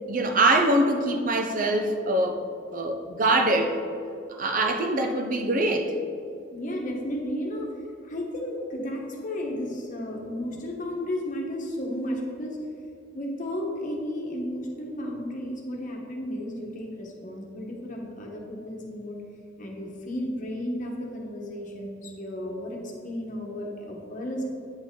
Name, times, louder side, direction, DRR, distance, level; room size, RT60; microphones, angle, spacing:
voice 1, 0.0-2.4 2.7-3.8 4.4-5.9, right 2 dB, 45° right, 4 dB, 0.8 m, -23 dB
voice 2, 6.5-7.7 8.1-12.6 13.1-19.2 19.6-24.5, left 1 dB, 40° left, 0 dB, 1.3 m, -33 dB
8.9 x 6.0 x 3.8 m, 2.5 s
head